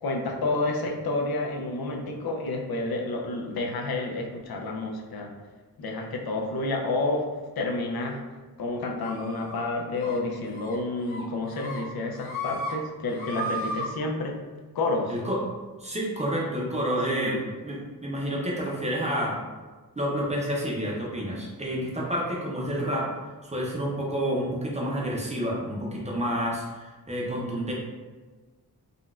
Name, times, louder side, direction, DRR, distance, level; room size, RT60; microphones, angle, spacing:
voice 1, 0.0-5.3 5.8-7.3 7.6-8.2 8.6-14.4 14.7-15.1 17.1-17.4, left 2 dB, 85° left, 1 dB, 0.5 m, -29 dB
sound 1, 9.0-9.6 10.0-10.2 10.5-10.7 11.1-11.8 12.1-12.7 13.0-13.8, equal, 65° left, 1.2 m, -34 dB
voice 2, 15.1-15.4 15.8-19.4 20.0-23.1 23.4-27.7, equal, 20° right, -4 dB, 0.5 m, -29 dB
3.8 x 2.2 x 2.4 m, 1.3 s
wide cardioid pair, 165°, 36 cm